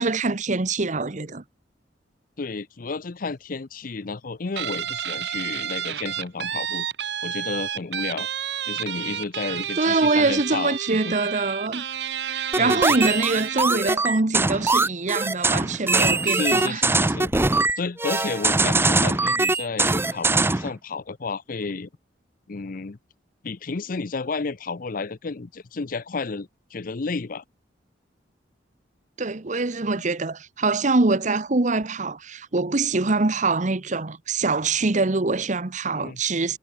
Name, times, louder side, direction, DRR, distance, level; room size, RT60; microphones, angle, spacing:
voice 1, 0.0-1.4 9.8-11.9 12.2-16.8 29.2-36.6, right 3 dB, 40° right, 1.0 m, -24 dB
voice 2, 2.4-6.9 7.2-8.3 8.6-11.2 12.5-13.0 16.2-17.3 17.8-21.9 22.5-23.0 23.4-27.4 35.9-36.2, left 4 dB, 50° left, 0.6 m, -32 dB
Guitar, 4.6-13.8, right 9 dB, 65° right, 1.1 m, -30 dB
sound 1, 12.5-20.7, right 3 dB, 15° right, 0.7 m, -22 dB
head